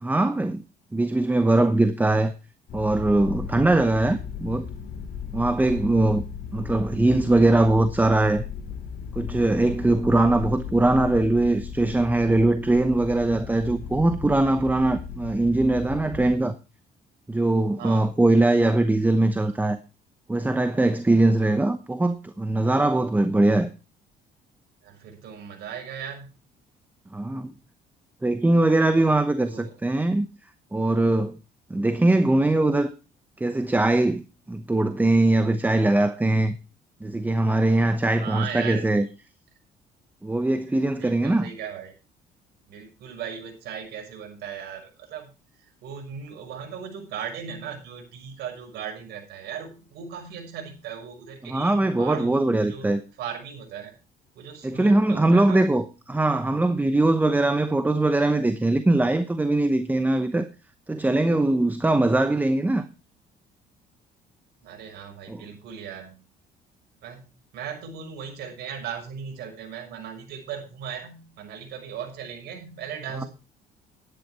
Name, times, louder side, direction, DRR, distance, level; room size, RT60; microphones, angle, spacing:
voice 1, 0.0-0.6 0.9-2.3 2.7-4.7 5.3-6.2 6.5-8.4 9.2-16.5 17.3-19.8 20.3-23.7 27.1-27.5 28.2-30.3 30.7-31.4 31.7-32.9 33.4-36.6 37.0-39.1 40.2-41.5 51.4-53.0 54.6-60.5 60.9-62.8 65.3-65.4, right 2 dB, 10° right, 0.9 m, -21 dB
sound 1, 2.7-16.4, left 7 dB, 60° left, 2.6 m, -36 dB
voice 2, 24.8-26.4 29.4-29.7 38.2-38.9 41.0-41.9 42.7-45.3 45.8-52.9 53.2-53.9 54.4-55.6 64.6-66.2 67.0-73.3, right 7 dB, 75° right, 6.0 m, -37 dB
12.0 x 10.0 x 4.5 m
cardioid pair, 110°, 17 cm